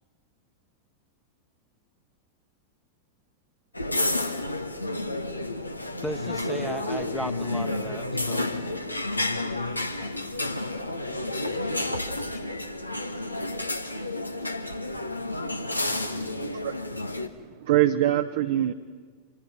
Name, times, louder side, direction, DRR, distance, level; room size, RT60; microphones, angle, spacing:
sound 1, 3.7-17.3, left 2 dB, 85° left, 1.4 m, -30 dB
voice 1, 6.0-8.5, right 1 dB, ahead, 9 dB, 1.2 m, -35 dB
voice 2, 10.0-10.3 10.8-12.8 15.8-16.5, left 8 dB, 45° left, 8 dB, 2.7 m, -51 dB
voice 3, 15.3-16.7 17.3-18.7, right 13 dB, 55° right, 6 dB, 1.0 m, -26 dB
26.0 x 21.5 x 9.6 m, 1.5 s
figure-of-eight pair, 90°, 0 cm